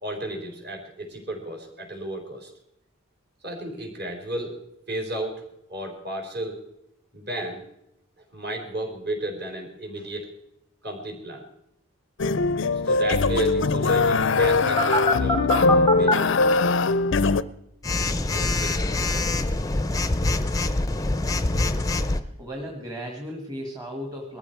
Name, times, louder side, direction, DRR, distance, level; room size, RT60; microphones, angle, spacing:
voice 1, 0.0-2.5 3.4-4.6 4.9-5.4 5.7-6.6 7.1-7.6 8.3-10.3 10.8-11.5 12.8-15.4 15.9-16.7 18.3-19.2, right 1 dB, 45° right, 2 dB, 4.0 m, -33 dB
sound 1, 12.2-17.4, left 3 dB, 55° left, 0.5 m, -21 dB
Telephone, 14.8-16.1 17.8-22.2, left 2 dB, 15° left, 0.6 m, -24 dB
voice 2, 22.1-24.4, equal, 15° right, 1 dB, 1.7 m, -36 dB
20.0 x 14.0 x 4.6 m, 0.81 s
head